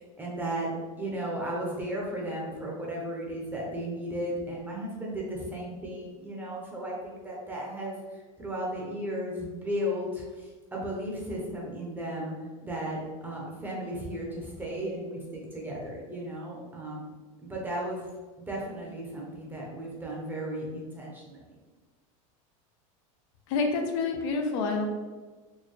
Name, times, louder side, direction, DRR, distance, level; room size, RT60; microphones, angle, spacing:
voice 1, 0.2-0.7 1.0-7.9 8.4-10.2 10.7-12.3 12.6-17.1 17.4-18.1 18.5-21.4, equal, 10° right, -3 dB, 0.8 m, -35 dB
voice 2, 23.5-24.9, left 4 dB, 65° left, 3 dB, 0.5 m, -28 dB
4.4 x 2.2 x 3.2 m, 1.3 s
supercardioid pair, 140°, 18 cm